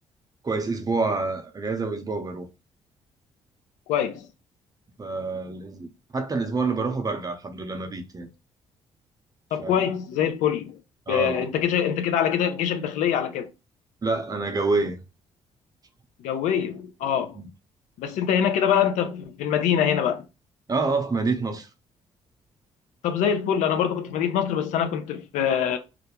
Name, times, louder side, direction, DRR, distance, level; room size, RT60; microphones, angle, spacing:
voice 1, 0.4-2.5 5.0-8.3 9.6-9.8 11.1-11.5 14.0-15.0 17.3-17.5 20.7-21.7, right 3 dB, 30° right, 0.6 m, -27 dB
voice 2, 3.9-4.3 9.5-10.8 11.1-13.5 16.2-17.4 18.0-20.2 23.0-25.8, left 8 dB, 85° left, 0.4 m, -24 dB
2.4 x 2.1 x 2.9 m
cardioid pair, 70°, 12 cm